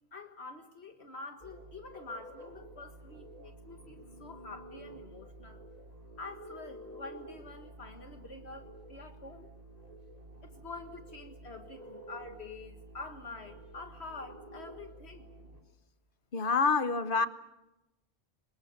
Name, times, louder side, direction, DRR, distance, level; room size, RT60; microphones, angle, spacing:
voice 1, 0.1-5.6 6.2-9.5 10.4-15.3, left 3 dB, 75° left, 2.0 m, -47 dB
sound 1, 1.4-15.6, right 1 dB, 35° right, 3.6 m, -50 dB
voice 2, 16.3-17.3, left 4 dB, 55° left, 1.3 m, -27 dB
24.5 x 21.0 x 8.0 m
omnidirectional pair, 1.1 m